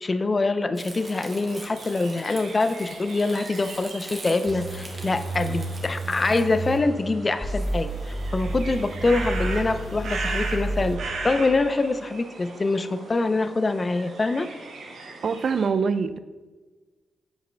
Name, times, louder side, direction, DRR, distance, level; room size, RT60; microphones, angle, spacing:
voice 1, 0.0-7.9 8.3-14.5, left 3 dB, 35° left, 10 dB, 0.4 m, -25 dB
Crumpling crinkling, 0.7-6.4, right 2 dB, 35° right, 1.3 m, -43 dB
sound 1, 1.0-15.7, right 3 dB, 75° right, 1.2 m, -38 dB
sound 2, 4.5-6.8 7.4-10.9, right 2 dB, 15° right, 2.1 m, -31 dB
voice 2, 15.2-16.2, right 5 dB, 60° right, 13 dB, 0.3 m, -24 dB
7.6 x 4.9 x 3.3 m, 1.3 s
supercardioid pair, 55°, 0 cm